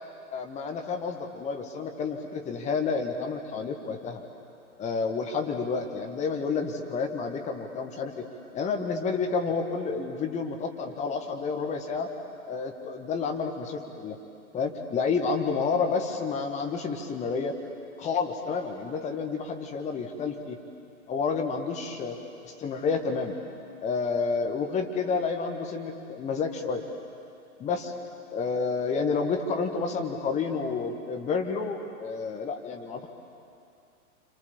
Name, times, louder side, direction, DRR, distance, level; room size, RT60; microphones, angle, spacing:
voice 1, 0.3-4.2 4.8-12.1 12.5-14.2 14.5-17.5 18.0-20.6 21.1-22.2 22.5-23.4 23.8-26.8 27.6-27.9 28.3-33.1, left 5 dB, 15° left, 4 dB, 1.7 m, -30 dB
30.0 x 26.5 x 7.4 m, 2.5 s
figure-of-eight pair, 110°, 44 cm